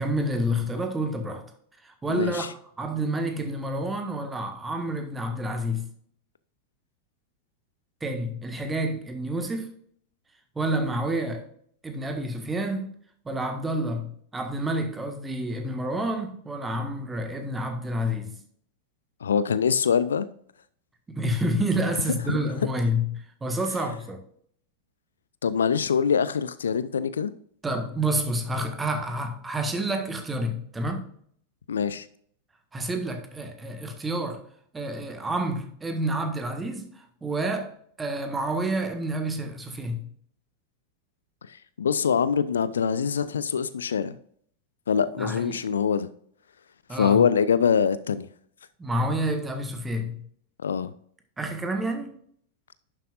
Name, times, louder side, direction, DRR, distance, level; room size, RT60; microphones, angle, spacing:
voice 1, 0.0-1.4 1.8-2.5 2.8-5.9 8.0-9.7 10.5-11.4 11.8-12.9 13.2-18.4 21.1-24.2 27.6-31.1 32.7-34.4 34.7-37.7 38.0-40.1 45.2-45.6 46.9-47.2 48.8-50.1 51.4-52.1, right 1 dB, 15° right, 1.5 m, -29 dB
voice 2, 2.1-2.5 19.2-20.3 22.3-22.4 25.4-27.3 31.7-32.1 41.8-44.2 44.9-46.1 46.9-48.3 50.6-50.9, left 7 dB, 70° left, 0.4 m, -24 dB
11.0 x 7.6 x 2.5 m
figure-of-eight pair, 90°, 0 cm